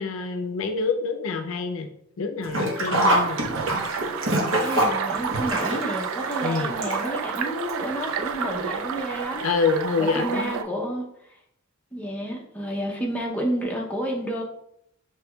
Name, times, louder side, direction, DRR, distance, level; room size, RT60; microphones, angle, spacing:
voice 1, 0.0-1.9 2.2-3.4 6.4-6.7 9.4-10.7, left 4 dB, 80° left, 6 dB, 0.5 m, -26 dB
Sink (filling or washing), 2.4-7.4 7.7-7.8 8.8-8.9 9.2-9.3, right 1 dB, 70° right, 0.9 m, -25 dB
sound 1, 2.9-10.6, right 6 dB, 90° right, 0.3 m, -30 dB
voice 2, 4.6-9.5 10.0-11.1 11.9-14.4, equal, 5° left, -2 dB, 0.6 m, -30 dB
5.9 x 3.1 x 2.2 m, 0.75 s
head